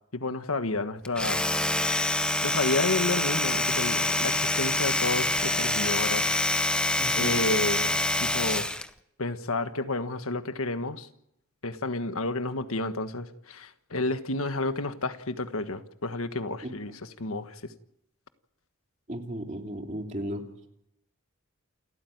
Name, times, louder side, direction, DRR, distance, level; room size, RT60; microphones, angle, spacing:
voice 1, 0.1-1.4 2.4-6.3 7.1-8.7 9.2-11.1 11.6-17.6, left 2 dB, 80° left, 10 dB, 1.5 m, -31 dB
Domestic sounds home sounds, 1.0-8.9, left 1 dB, 5° left, 0.8 m, -26 dB
voice 2, 7.0-7.4 19.1-20.4, equal, 35° right, 3 dB, 2.9 m, -35 dB
28.5 x 14.0 x 9.3 m, 0.79 s
head